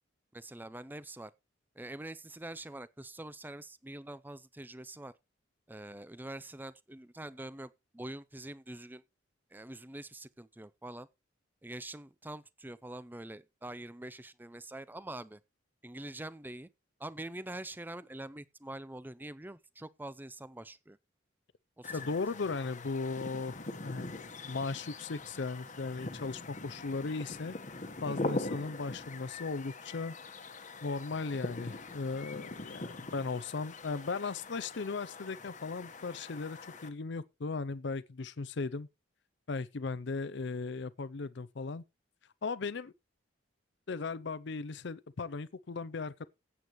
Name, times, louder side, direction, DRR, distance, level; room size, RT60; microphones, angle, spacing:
voice 1, 0.3-1.3 1.8-5.1 5.7-9.0 9.5-11.1 11.6-15.4 15.8-16.7 17.0-21.0 21.8-22.0, right 1 dB, 10° right, 0.5 m, -45 dB
sound 1, 21.8-36.9, left 2 dB, 40° left, 1.2 m, -42 dB
voice 2, 21.9-27.6 28.0-30.1 30.8-38.9 39.5-41.8 42.4-42.9 43.9-46.3, left 4 dB, 60° left, 0.6 m, -37 dB
15.5 x 8.4 x 3.1 m
head